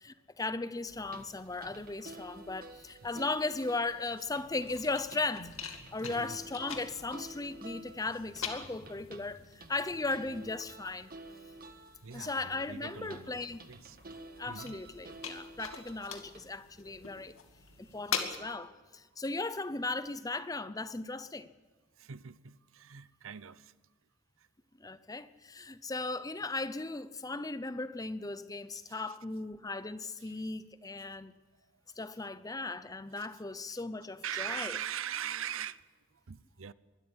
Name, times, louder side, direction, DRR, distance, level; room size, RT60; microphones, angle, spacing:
voice 1, 0.0-11.1 12.1-13.6 14.4-17.3 17.8-21.5 24.8-31.3 32.0-34.8, left 3 dB, 15° left, 0.7 m, -37 dB
sound 1, 0.8-18.4, left 7 dB, 90° left, 2.4 m, -45 dB
sound 2, 1.0-16.4, right 2 dB, 45° right, 1.6 m, -51 dB
voice 2, 6.0-6.4 12.0-14.0 14.5-14.8 17.8-17.9 22.0-23.7 28.9-29.2 30.2-30.5 33.1-33.3 33.7-33.8 34.2-35.8 36.3-36.7, right 9 dB, 80° right, 0.7 m, -41 dB
23.0 x 13.0 x 9.7 m
head